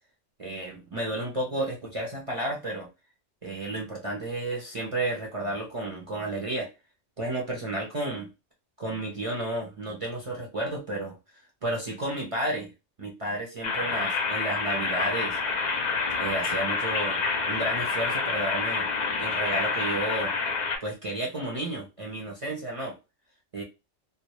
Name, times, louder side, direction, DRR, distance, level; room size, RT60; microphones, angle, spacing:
voice 1, 0.4-2.9 3.4-6.7 7.2-8.3 8.8-11.2 11.6-12.7 13.0-15.4 16.2-18.9 19.2-20.3 20.8-22.9 23.5-23.6, right 1 dB, 45° right, -2 dB, 0.4 m, -32 dB
sound 1, 13.6-20.8, left 4 dB, 55° left, 0.5 m, -28 dB
2.1 x 2.1 x 2.9 m, 0.27 s
omnidirectional pair, 1.3 m